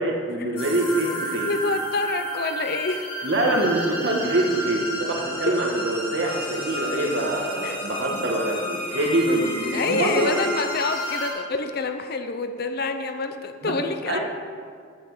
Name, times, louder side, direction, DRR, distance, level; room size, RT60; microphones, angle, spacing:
voice 1, 0.0-1.5 3.2-10.4 13.6-13.7 14.1-14.2, right 1 dB, 60° right, 0 dB, 1.6 m, -24 dB
sound 1, 0.6-11.3, equal, 25° left, 2.6 m, -32 dB
voice 2, 1.4-3.1 7.6-7.8 9.7-14.2, left 3 dB, 50° left, 8 dB, 0.6 m, -27 dB
8.8 x 7.1 x 8.6 m, 2.1 s
head